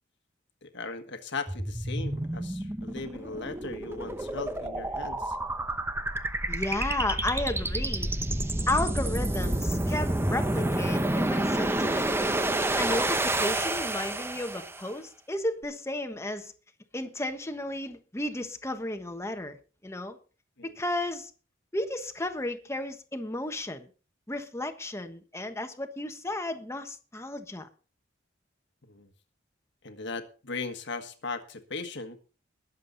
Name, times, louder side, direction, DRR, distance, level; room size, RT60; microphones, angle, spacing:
voice 1, 0.6-5.4 20.6-20.7 28.8-29.1 29.8-32.2, left 3 dB, 65° left, 1.6 m, -38 dB
sound 1, 1.5-14.9, right 1 dB, 15° right, 0.9 m, -29 dB
voice 2, 6.5-8.1 8.7-12.1 12.8-16.5 16.9-19.6 19.8-20.2 20.6-21.3 21.7-23.9 24.3-27.7, left 1 dB, 15° left, 1.3 m, -33 dB
20.5 x 7.6 x 4.0 m
head